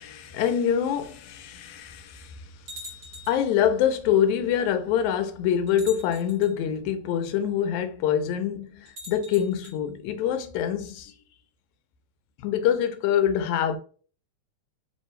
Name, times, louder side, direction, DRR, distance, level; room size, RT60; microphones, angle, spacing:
voice 1, 0.0-2.3 3.3-11.1 12.4-13.8, left 9 dB, 80° left, 1.9 m, -25 dB
sound 1, 1.0-1.1 1.9-2.0 2.7-3.5 4.7-4.8 5.7-6.5 8.9-9.8, left 1 dB, 35° right, 1.3 m, -43 dB
4.4 x 3.0 x 3.1 m
omnidirectional pair, 3.5 m